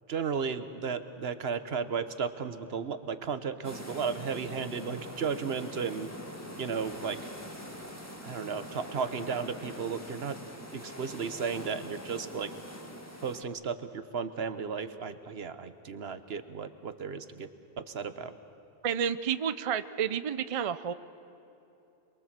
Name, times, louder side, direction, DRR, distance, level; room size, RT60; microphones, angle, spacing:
voice 1, 0.1-6.1 6.6-7.2 8.2-10.4 10.7-12.5 13.2-17.5 17.8-18.3, right 6 dB, 80° right, 11 dB, 1.2 m, -34 dB
sound 1, 3.6-13.4, left 1 dB, 15° left, 1.9 m, -44 dB
voice 2, 18.8-20.9, right 8 dB, 40° right, 13 dB, 0.6 m, -30 dB
27.5 x 22.5 x 7.5 m, 2.8 s
omnidirectional pair, 1.0 m